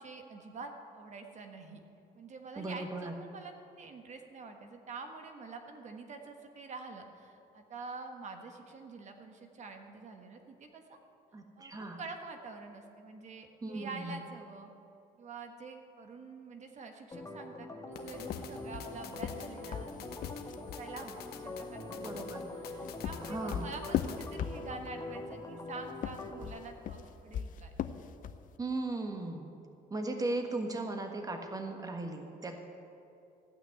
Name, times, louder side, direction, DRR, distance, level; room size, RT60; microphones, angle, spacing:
voice 1, 0.0-1.8 2.1-11.0 11.6-11.7 12.0-14.7 15.2-19.9 20.8-27.7, right 4 dB, 45° right, 5 dB, 1.4 m, -47 dB
voice 2, 2.6-3.1 11.3-12.0 13.6-14.2 22.0-22.4 23.3-23.7 28.6-29.5 29.9-32.6, right 2 dB, 20° right, 4 dB, 1.4 m, -37 dB
Organ, 17.1-26.5, left 2 dB, 20° left, 1.4 m, -44 dB
sound 1, 17.9-24.4, left 8 dB, 70° left, 1.1 m, -51 dB
sound 2, 18.2-20.9 22.6-25.0 25.9-28.5, left 9 dB, 55° left, 0.6 m, -38 dB
15.0 x 6.1 x 9.4 m, 2.7 s
cardioid pair, 110°, 17 cm